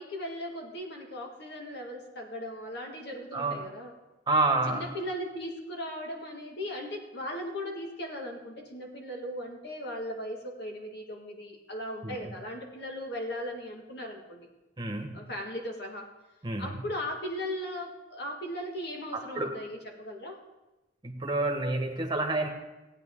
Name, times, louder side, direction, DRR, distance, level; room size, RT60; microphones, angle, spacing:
voice 1, 0.0-3.9 4.7-14.5 15.1-16.1 16.6-20.4, left 1 dB, 65° left, 1 dB, 2.0 m, -38 dB
voice 2, 3.3-3.7 4.3-4.9 12.0-12.3 14.8-15.2 16.4-16.8 19.3-19.6 21.0-22.5, right 2 dB, 25° right, 2 dB, 1.4 m, -29 dB
16.0 x 9.2 x 3.8 m, 1.0 s
head